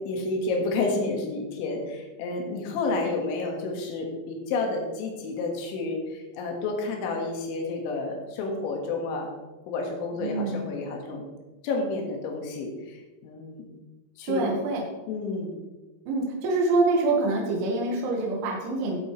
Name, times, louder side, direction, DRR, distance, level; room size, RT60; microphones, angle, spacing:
voice 1, 0.0-9.3 9.7-11.2 11.6-13.7 14.2-14.5 15.1-15.6, left 3 dB, 75° left, 1 dB, 4.0 m, -30 dB
voice 2, 10.2-10.7 14.3-14.9 16.1-19.0, right 3 dB, 75° right, -1 dB, 3.9 m, -25 dB
16.5 x 7.9 x 3.2 m, 1.2 s
omnidirectional pair, 5.5 m